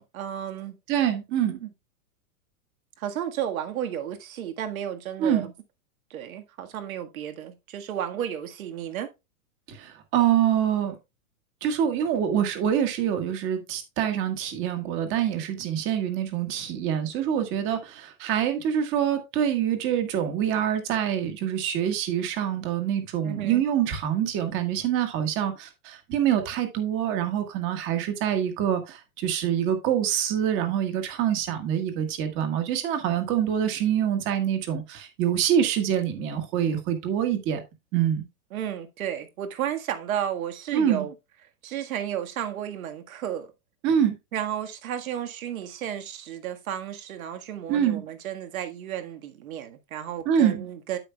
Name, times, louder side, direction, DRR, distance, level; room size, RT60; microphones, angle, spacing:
voice 1, 0.0-0.7 1.5-1.7 3.0-5.5 6.1-9.1 23.2-23.6 38.5-41.1 41.6-43.5 44.3-51.0, right 10 dB, 70° right, 1.7 m, -33 dB
voice 2, 0.9-1.6 5.2-5.5 9.7-11.0 11.6-37.6 37.9-38.3 40.7-41.1 43.8-44.2 47.7-48.0 50.2-50.6, right 9 dB, 25° right, 1.6 m, -25 dB
9.8 x 8.1 x 2.3 m
supercardioid pair, 160°, 44 cm